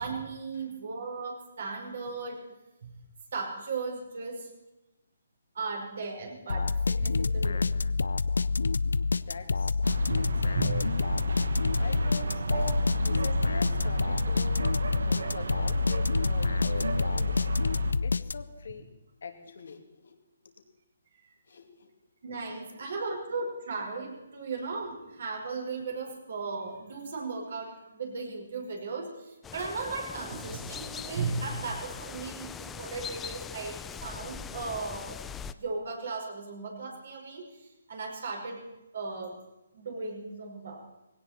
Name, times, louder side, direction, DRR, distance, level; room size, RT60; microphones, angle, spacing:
voice 1, 0.0-2.4 2.8-2.9 3.3-4.5 5.6-7.9 10.1-10.2 10.5-10.7 12.5-12.7 22.2-35.2 35.5-37.4 37.9-38.7 38.9-39.4 39.7-40.9, right 4 dB, 65° right, 0 dB, 5.3 m, -36 dB
sound 1, 6.5-18.7, left 4 dB, 85° left, 0.5 m, -27 dB
voice 2, 9.2-9.8 10.2-11.0 11.8-14.8 15.1-17.5 18.0-18.9 19.2-20.2 21.5-21.9, left 5 dB, 70° left, 5 dB, 2.4 m, -44 dB
sound 2, 9.8-17.9, right 3 dB, 80° right, 1.2 m, -33 dB
sound 3, 29.4-35.5, left 7 dB, 10° left, 0.4 m, -41 dB
18.5 x 17.0 x 4.4 m, 0.98 s
hypercardioid pair, 155°, 0 cm